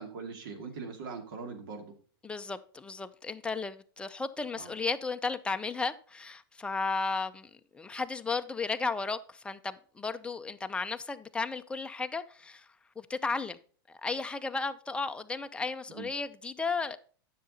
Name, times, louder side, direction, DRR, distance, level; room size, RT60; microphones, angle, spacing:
voice 1, 0.0-2.0 4.5-4.7 15.9-16.1, right 5 dB, 65° right, 2.5 m, -41 dB
voice 2, 2.2-12.7 13.0-13.6 13.9-17.0, left 4 dB, 10° left, 0.6 m, -34 dB
10.0 x 6.7 x 4.0 m
hypercardioid pair, 125°, 12 cm